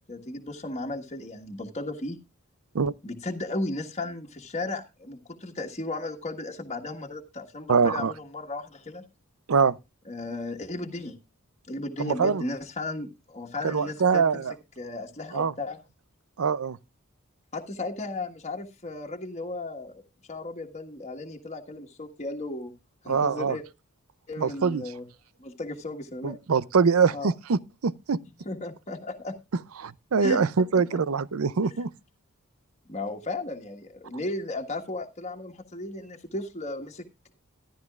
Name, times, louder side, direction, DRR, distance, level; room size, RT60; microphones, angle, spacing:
voice 1, 0.0-2.2 3.0-9.0 10.1-11.1 11.7-14.4 14.8-15.8 17.5-20.0 20.3-22.7 23.0-23.6 24.3-25.1 25.4-26.4 27.1-27.3 28.4-29.4 30.2-30.4 30.7-31.0 32.9-37.0, left 2 dB, 30° left, 1.6 m, -35 dB
voice 2, 7.7-8.1 9.5-9.8 12.0-12.4 13.6-14.5 15.3-15.5 16.4-16.8 23.1-23.6 24.4-24.8 26.2-28.2 29.8-31.9, right 5 dB, 80° right, 0.6 m, -24 dB
14.0 x 12.0 x 2.4 m
head